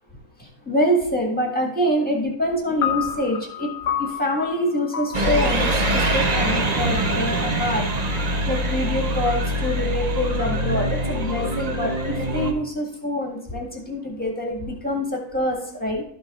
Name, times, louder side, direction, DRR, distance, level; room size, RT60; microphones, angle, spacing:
voice 1, 0.4-3.7 4.0-7.9 8.5-16.0, equal, 5° left, -1 dB, 1.5 m, -25 dB
sound 1, 2.8-9.3, left 7 dB, 70° left, 1.4 m, -32 dB
sound 2, 5.1-12.5, right 1 dB, 60° right, 0.4 m, -23 dB
13.0 x 6.0 x 2.4 m, 0.69 s
omnidirectional pair, 1.9 m